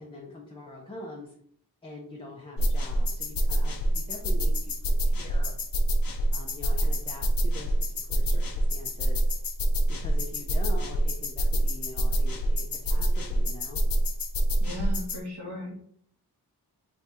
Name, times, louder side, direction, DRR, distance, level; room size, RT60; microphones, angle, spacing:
voice 1, 0.0-1.3 1.8-4.7 5.0-5.5 6.3-9.2 9.9-13.8, left 1 dB, 15° left, -3 dB, 0.6 m, -43 dB
sound 1, 2.6-15.2, right 1 dB, 60° left, 0.6 m, -26 dB
voice 2, 14.6-15.7, equal, 80° right, -4 dB, 1.4 m, -36 dB
3.4 x 2.4 x 4.2 m, 0.63 s
wide cardioid pair, 100°, 39 cm